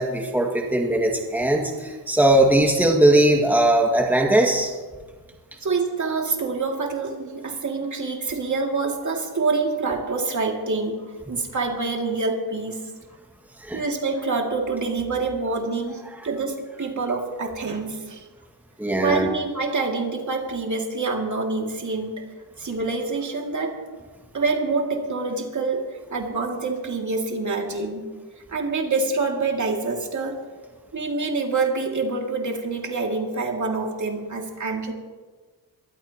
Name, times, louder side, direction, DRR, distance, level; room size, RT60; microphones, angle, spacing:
voice 1, 0.0-4.8 13.6-13.8 18.8-19.3, right 1 dB, 5° right, 0 dB, 2.0 m, -19 dB
voice 2, 5.6-11.0 11.3-12.8 13.7-18.3 19.0-22.2 22.6-23.8 24.3-25.8 26.1-28.0 28.5-30.4 30.9-34.9, right 3 dB, 45° right, 1 dB, 2.5 m, -26 dB
22.5 x 15.0 x 3.0 m, 1.4 s
cardioid pair, 85°, 41 cm